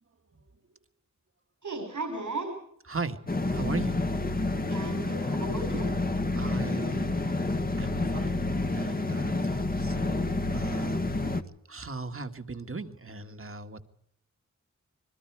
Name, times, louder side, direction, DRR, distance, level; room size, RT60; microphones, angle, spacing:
voice 1, 1.6-2.5 4.7-5.9, right 2 dB, 90° right, 4 dB, 5.3 m, -35 dB
voice 2, 2.9-3.2 3.5-4.0 6.4-7.1 7.8-8.4 8.7-11.1 11.7-13.8, right 3 dB, 45° right, 8 dB, 1.8 m, -38 dB
sound 1, 3.3-11.4, left 2 dB, 30° left, 1.5 m, -29 dB
28.5 x 21.5 x 4.8 m, 0.73 s
wide cardioid pair, 90°, 29 cm